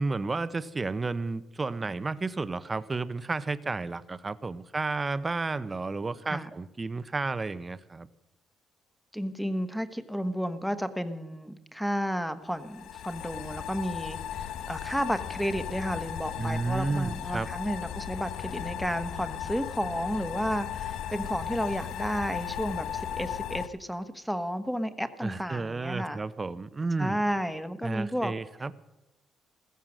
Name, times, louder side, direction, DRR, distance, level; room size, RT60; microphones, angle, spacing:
voice 1, 0.0-8.1 16.4-17.5 25.2-27.2 27.8-28.7, right 3 dB, 25° right, 15 dB, 0.8 m, -32 dB
voice 2, 9.1-26.2 27.0-28.3, equal, ahead, 10 dB, 1.2 m, -32 dB
sound 1, 12.5-23.7, left 9 dB, 85° left, 1.0 m, -36 dB
15.0 x 15.0 x 6.3 m, 0.98 s
cardioid pair, 90°, 0 cm